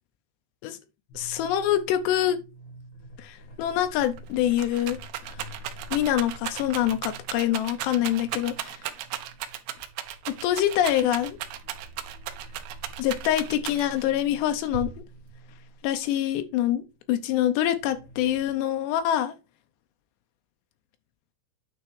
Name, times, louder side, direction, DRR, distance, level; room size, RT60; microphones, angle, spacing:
voice 1, 1.1-2.4 3.2-5.0 5.9-8.8 10.3-11.4 13.0-14.9 15.8-16.8 17.1-19.3, left 12 dB, 80° left, 2.5 m, -25 dB
sound 1, 1.1-15.9 16.3-18.5, right 1 dB, 65° left, 4.1 m, -47 dB
Rattle, 3.8-3.9 4.2-14.1 14.7-15.4, right 12 dB, 90° right, 2.2 m, -36 dB
9.2 x 3.5 x 4.6 m
omnidirectional pair, 5.5 m